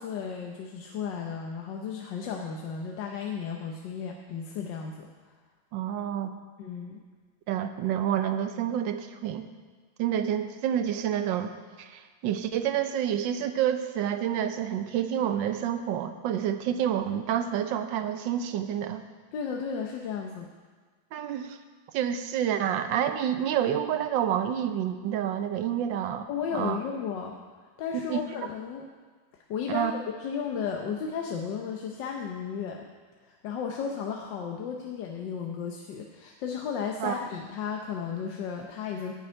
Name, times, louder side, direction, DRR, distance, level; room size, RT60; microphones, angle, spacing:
voice 1, 0.0-5.1 6.6-7.0 19.3-20.5 26.3-27.4 27.8-28.9 29.5-29.9 30.2-32.8 33.2-39.1, left 6 dB, 65° left, 1 dB, 1.4 m, -34 dB
voice 2, 5.7-6.3 7.5-9.5 10.0-11.5 11.8-19.0 21.1-21.6 21.9-26.8 28.1-28.2 29.7-29.9 37.0-37.2, right 9 dB, 70° right, 9 dB, 1.4 m, -28 dB
9.5 x 7.9 x 8.9 m, 1.5 s
omnidirectional pair, 2.2 m